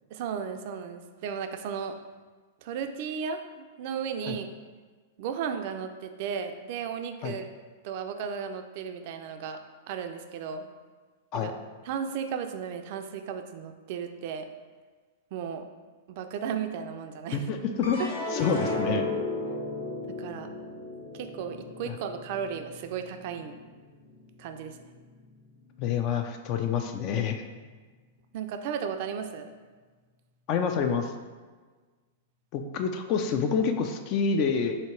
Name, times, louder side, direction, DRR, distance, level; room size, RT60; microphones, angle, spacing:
voice 1, 0.1-2.0 2.6-4.5 5.2-7.5 7.8-9.6 9.9-10.7 11.3-11.5 11.9-14.5 15.3-15.6 16.1-17.5 18.0-18.1 20.2-20.5 21.1-23.6 24.4-24.8 28.3-29.6, right 7 dB, 55° right, 7 dB, 0.3 m, -35 dB
voice 2, 17.3-18.0 18.3-19.1 21.9-22.0 25.8-27.4 30.5-31.1 32.5-34.8, left 6 dB, 40° left, 6 dB, 0.3 m, -27 dB
sound 1, 17.8-24.3 24.7-25.4, left 2 dB, 70° left, 1.0 m, -35 dB
3.0 x 2.8 x 4.4 m, 1.4 s
hypercardioid pair, 125°, 0 cm